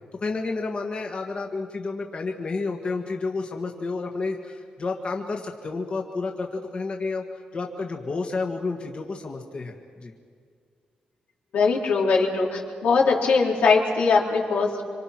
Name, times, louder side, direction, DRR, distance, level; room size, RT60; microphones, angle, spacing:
voice 1, 0.2-10.1, left 3 dB, 40° left, 2 dB, 1.7 m, -30 dB
voice 2, 11.5-14.8, left 4 dB, 90° left, -2 dB, 4.2 m, -21 dB
26.5 x 25.5 x 6.1 m, 2.2 s
cardioid pair, 120°, 3 cm